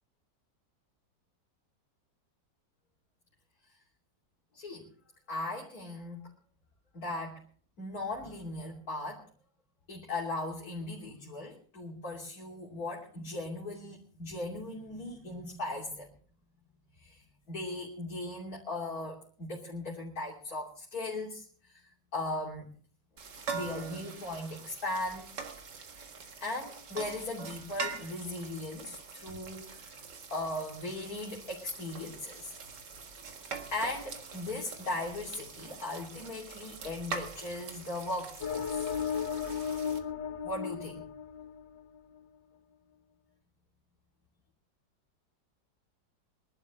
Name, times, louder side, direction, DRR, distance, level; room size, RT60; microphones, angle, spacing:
voice 1, 4.5-4.9 5.3-6.3 6.9-7.4 7.8-9.3 9.9-16.1 17.0-22.7 23.5-25.3 26.4-29.9 30.3-32.5 33.7-39.0 40.4-41.0, left 2 dB, 55° left, -2 dB, 3.5 m, -38 dB
sound 1, 23.2-40.0, right 5 dB, 70° right, 2.3 m, -44 dB
sound 2, 38.4-42.0, left 7 dB, 85° left, 2.0 m, -35 dB
24.0 x 11.5 x 3.7 m, 0.43 s
omnidirectional pair, 1.9 m